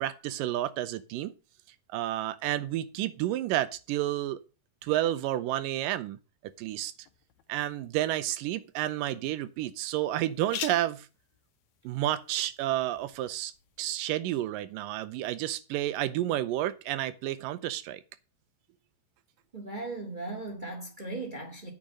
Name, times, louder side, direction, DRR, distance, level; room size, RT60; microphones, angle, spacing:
voice 1, 0.0-1.3 1.9-4.4 4.8-6.2 6.6-6.9 7.5-11.1 11.8-13.5 13.8-18.0, right 14 dB, 85° right, 2.4 m, -30 dB
sound 1, 6.5-14.0, left 9 dB, 65° left, 2.0 m, -47 dB
voice 2, 19.5-21.7, right 2 dB, 35° right, 0.7 m, -37 dB
8.6 x 5.3 x 7.4 m
omnidirectional pair, 3.9 m